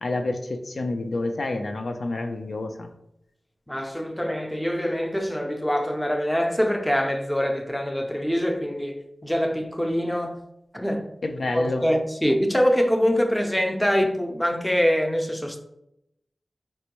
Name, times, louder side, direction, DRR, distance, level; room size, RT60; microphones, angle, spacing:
voice 1, 0.0-2.9 11.2-11.8, left 2 dB, 80° left, 0.3 m, -28 dB
voice 2, 3.7-10.4 10.7-11.1 11.5-15.6, equal, 10° left, 0.4 m, -24 dB
4.3 x 2.1 x 2.9 m
wide cardioid pair, 80°, 0 cm